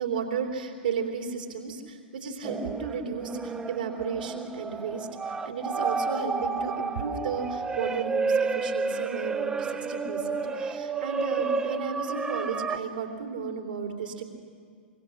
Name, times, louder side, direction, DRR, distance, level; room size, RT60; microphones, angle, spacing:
voice 1, 0.0-14.2, right 5 dB, 65° right, 3 dB, 3.2 m, -34 dB
sound 1, 2.4-12.8, right 4 dB, 15° right, 0.9 m, -31 dB
24.5 x 23.5 x 6.6 m, 2.1 s
figure-of-eight pair, 95°, 5 cm